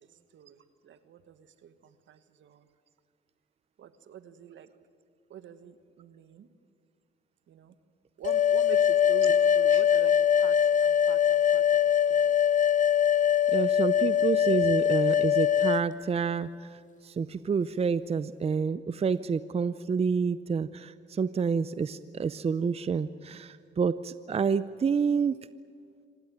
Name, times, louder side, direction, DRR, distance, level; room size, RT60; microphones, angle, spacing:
voice 1, 0.8-2.6 3.8-4.7 5.3-6.5 7.5-7.7 8.2-10.6 10.8-12.3, right 9 dB, 70° right, 12 dB, 1.5 m, -45 dB
sound 1, 8.2-15.8, left 9 dB, 40° left, 0.6 m, -23 dB
voice 2, 13.5-25.4, right 5 dB, 30° right, 15 dB, 0.6 m, -28 dB
26.0 x 17.5 x 9.2 m, 2.2 s
cardioid pair, 90°, 20 cm